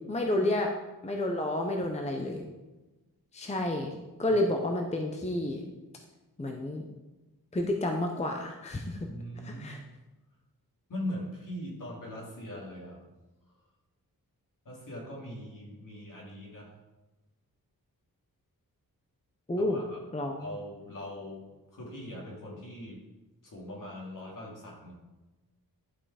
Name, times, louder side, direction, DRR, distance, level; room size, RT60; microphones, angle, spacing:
voice 1, 0.1-0.7 1.0-2.4 3.3-3.9 4.2-5.6 6.4-6.8 7.5-9.0 9.4-9.8 19.5-19.8 20.1-20.4, left 1 dB, 20° left, 3 dB, 0.7 m, -30 dB
voice 2, 9.0-9.7 10.9-13.0 14.6-16.7 19.6-20.0 20.4-23.0 23.4-24.9, left 1 dB, 60° left, -3 dB, 3.0 m, -41 dB
11.0 x 5.6 x 4.9 m, 1.1 s
wide cardioid pair, 170°, 36 cm